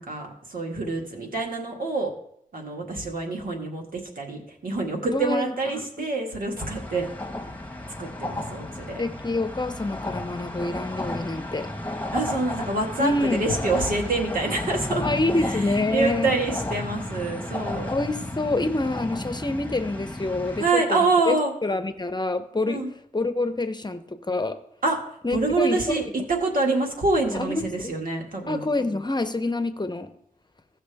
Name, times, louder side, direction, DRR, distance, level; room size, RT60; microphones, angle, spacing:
voice 1, 0.0-2.1 2.5-7.1 8.0-9.0 12.1-15.0 15.4-15.6 15.9-17.9 20.6-21.5 22.7-22.9 24.8-25.0 25.3-28.7, right 3 dB, 85° right, 1 dB, 1.9 m, -26 dB
voice 2, 5.1-6.1 9.0-11.7 13.0-13.5 15.0-16.3 17.9-21.4 21.6-22.8 23.1-24.6 25.2-25.8 27.3-27.9 28.5-30.1, left 2 dB, 30° left, 9 dB, 0.8 m, -27 dB
sound 1, 6.6-20.7, left 1 dB, 10° left, 1.5 m, -33 dB
16.5 x 6.0 x 3.5 m, 0.71 s
wide cardioid pair, 65°, 14 cm